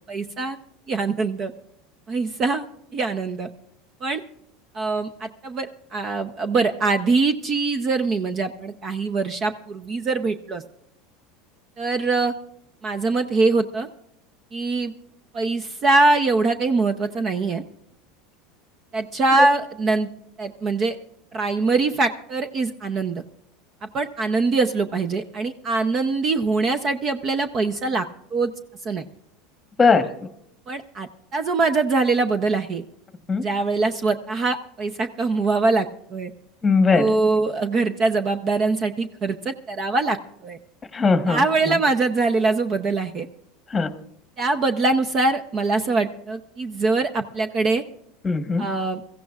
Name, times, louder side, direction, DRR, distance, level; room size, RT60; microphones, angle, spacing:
voice 1, 0.1-0.6 0.9-1.5 2.1-2.6 2.9-3.5 4.0-4.2 4.7-10.6 11.8-12.3 12.8-13.9 14.5-14.9 15.3-17.6 18.9-20.1 20.4-21.0 21.3-23.2 23.9-28.0 28.3-28.5 28.8-29.0 30.7-32.8 33.4-36.3 36.9-40.2 40.4-40.6 41.3-43.3 44.4-47.8 48.6-49.0, right 3 dB, 30° right, 9 dB, 0.7 m, -23 dB
voice 2, 36.6-37.1 40.9-41.8 43.7-43.9 48.2-48.6, left 4 dB, 15° left, 8 dB, 1.2 m, -19 dB
22.5 x 15.5 x 2.4 m, 0.74 s
supercardioid pair, 145°, 0 cm